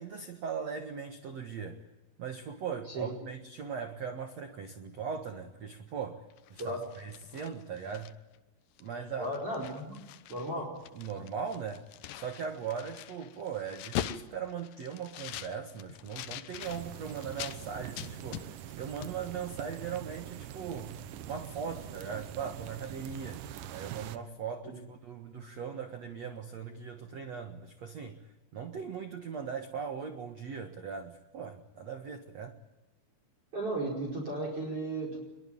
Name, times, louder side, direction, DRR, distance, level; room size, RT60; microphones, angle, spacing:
voice 1, 0.0-1.9 2.2-6.2 6.5-8.1 8.8-9.3 10.5-10.7 10.9-11.9 12.1-28.2 28.5-32.6, right 6 dB, 70° right, 6 dB, 1.6 m, -39 dB
sound 1, 6.3-8.4 8.8-8.9 9.2-10.5 10.8-17.6 18.0-18.8 19.0-19.2, left 12 dB, 80° left, 2.0 m, -42 dB
voice 2, 9.2-10.0 10.3-10.7 24.6-24.8 33.5-35.2, right 1 dB, 30° right, 1 dB, 5.5 m, -35 dB
sound 2, 16.6-24.2, right 11 dB, 90° right, 1.8 m, -44 dB
24.5 x 22.5 x 8.8 m, 1.1 s
omnidirectional pair, 5.4 m